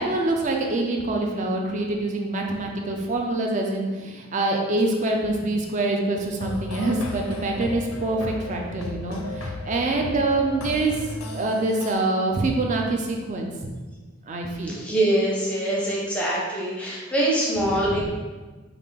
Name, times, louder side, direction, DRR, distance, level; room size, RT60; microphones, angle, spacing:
voice 1, 0.0-11.1 11.3-13.7 14.2-14.8 17.7-18.1, right 2 dB, 35° right, 1 dB, 0.4 m, -25 dB
sound 1, 6.4-11.9, left 2 dB, 85° left, 0.5 m, -34 dB
voice 2, 14.7-18.1, right 1 dB, 5° left, -5 dB, 0.6 m, -24 dB
3.4 x 2.4 x 3.4 m, 1.3 s
head